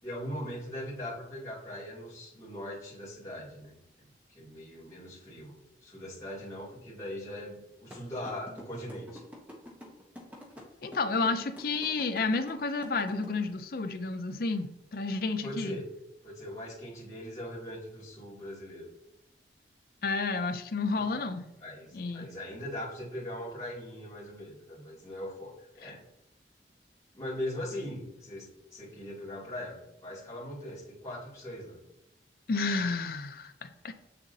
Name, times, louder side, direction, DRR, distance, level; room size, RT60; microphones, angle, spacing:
voice 1, 0.0-9.2 15.4-15.9 16.2-18.9 21.0-21.2 21.5-26.0 27.1-31.8, left 1 dB, 20° left, 2.5 m, -40 dB
sound 1, 7.9-13.2, left 1 dB, 10° right, 1.0 m, -46 dB
voice 2, 10.8-15.8 20.0-21.5 21.9-22.3 32.5-33.9, left 3 dB, 55° left, 0.5 m, -31 dB
7.2 x 6.7 x 2.7 m
head